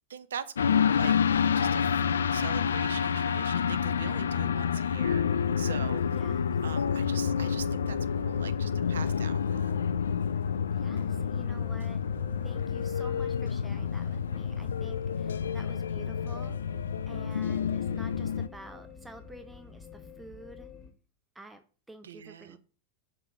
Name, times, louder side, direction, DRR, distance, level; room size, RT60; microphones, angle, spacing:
voice 1, 0.1-1.1 1.5-6.0 6.6-9.7 22.0-22.6, right 7 dB, 65° right, 13 dB, 0.7 m, -42 dB
sound 1, 0.6-18.5, left 7 dB, 65° left, 0.4 m, -28 dB
sound 2, 4.9-20.9, left 6 dB, 15° left, 1.4 m, -48 dB
voice 2, 6.1-6.5 10.7-12.0 12.3-20.7 21.3-22.6, right 2 dB, 5° right, 7 dB, 0.7 m, -50 dB
5.7 x 5.0 x 6.0 m, 0.38 s
figure-of-eight pair, 90°, 0 cm